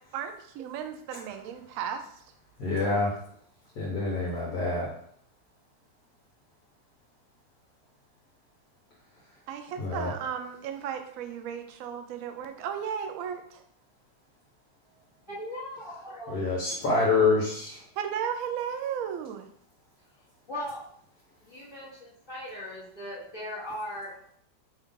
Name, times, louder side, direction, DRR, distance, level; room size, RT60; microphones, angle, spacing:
voice 1, 0.1-2.0 9.5-13.6 18.0-19.4, right 8 dB, 80° right, 6 dB, 0.7 m, -35 dB
voice 2, 2.6-3.1 3.8-4.9 9.8-10.1 16.3-17.8, left 3 dB, 60° left, -5 dB, 1.3 m, -26 dB
voice 3, 15.3-16.3 20.5-20.8 21.4-24.1, left 1 dB, 20° left, -12 dB, 0.9 m, -38 dB
5.3 x 2.4 x 3.7 m, 0.66 s
omnidirectional pair, 2.0 m